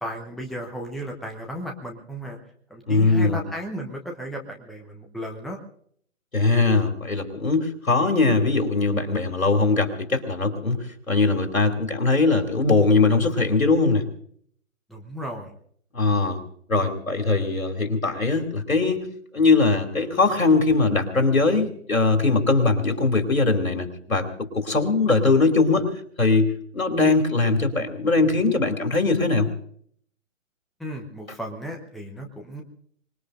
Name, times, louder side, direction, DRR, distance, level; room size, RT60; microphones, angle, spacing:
voice 1, 0.0-2.4 2.7-5.6 14.9-15.5 30.8-32.6, equal, ahead, 1 dB, 0.9 m, -34 dB
voice 2, 2.9-3.4 6.3-14.0 15.9-16.4 16.7-19.0 19.3-24.3 24.5-25.9 26.2-29.5, left 3 dB, 85° left, 4 dB, 2.9 m, -21 dB
25.5 x 20.5 x 2.6 m, 0.62 s
figure-of-eight pair, 130°, 40 cm